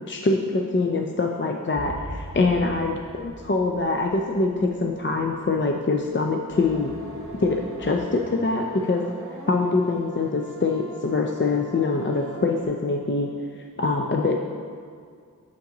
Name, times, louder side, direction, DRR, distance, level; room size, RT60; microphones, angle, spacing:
voice 1, 0.1-6.9 7.4-9.0 9.5-13.3 13.8-14.4, left 3 dB, 35° left, 2 dB, 0.4 m, -24 dB
sound 1, 1.7-6.0 6.2-6.3, right 1 dB, 65° left, 1.1 m, -41 dB
sound 2, 6.5-12.7, right 2 dB, 40° right, 1.0 m, -41 dB
6.6 x 5.5 x 3.8 m, 2.1 s
wide cardioid pair, 40°, 35 cm